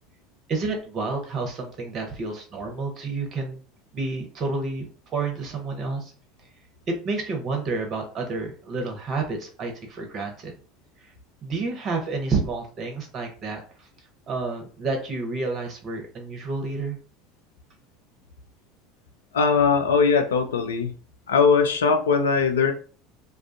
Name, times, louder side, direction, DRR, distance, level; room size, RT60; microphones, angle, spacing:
voice 1, 0.5-3.6 3.9-6.1 6.9-10.5 11.4-13.9 14.3-17.0, right 3 dB, 40° right, 3 dB, 0.8 m, -30 dB
voice 2, 19.3-20.9 21.3-22.7, left 5 dB, 70° left, 6 dB, 0.4 m, -20 dB
2.3 x 2.3 x 2.5 m, 0.39 s
figure-of-eight pair, 70°, 0 cm